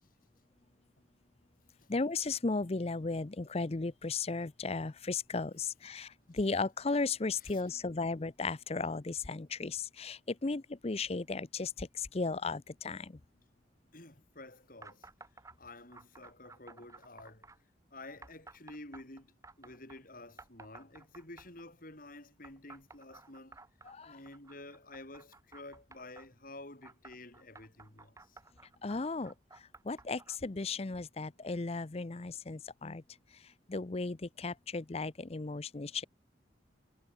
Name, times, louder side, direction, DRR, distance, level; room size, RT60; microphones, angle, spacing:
voice 1, 1.9-13.2 23.8-24.2 28.8-33.0 33.7-36.0, left 3 dB, 35° left, 0.6 m, -35 dB
voice 2, 13.9-15.1 15.6-17.5 17.9-23.6 24.1-28.4, left 2 dB, 50° left, 5.6 m, -51 dB
sound 1, 14.8-15.6 15.9-17.6 18.2-20.0 20.4-21.7 22.4-26.3 26.8-30.4, right 3 dB, 15° right, 1.7 m, -55 dB
head